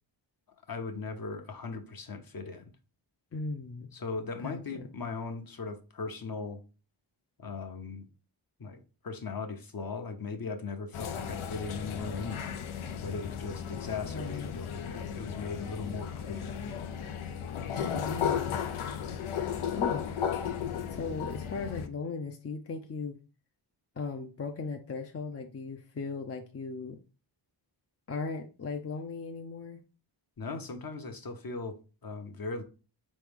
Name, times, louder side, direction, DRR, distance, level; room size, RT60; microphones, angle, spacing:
voice 1, 0.7-2.7 3.9-6.6 7.4-8.1 8.6-12.6 13.0-16.5 30.4-32.6, left 4 dB, 45° left, 0.8 m, -38 dB
voice 2, 3.3-3.9 4.4-4.8 14.0-14.5 17.8-18.6 19.7-20.3 20.9-23.2 24.0-27.0 28.1-29.8, left 4 dB, 30° left, 0.5 m, -37 dB
sound 1, 10.9-21.9, left 8 dB, 85° left, 0.6 m, -35 dB
3.9 x 3.1 x 3.5 m
cardioid pair, 45°, 48 cm